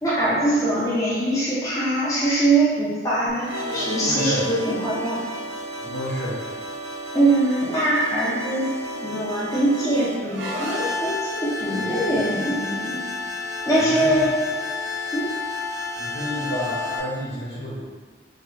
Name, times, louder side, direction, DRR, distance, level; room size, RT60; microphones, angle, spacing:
voice 1, 0.0-5.2 7.1-8.7 9.0-12.9 13.6-14.3 15.1-15.3, right 1 dB, 20° left, -9 dB, 0.7 m, -22 dB
sound 1, 3.3-17.0, left 2 dB, 80° right, 0.6 m, -31 dB
voice 2, 4.0-4.5 5.8-6.4 13.8-14.2 16.0-17.8, equal, 70° left, -7 dB, 1.0 m, -30 dB
3.6 x 2.3 x 3.3 m, 1.4 s
head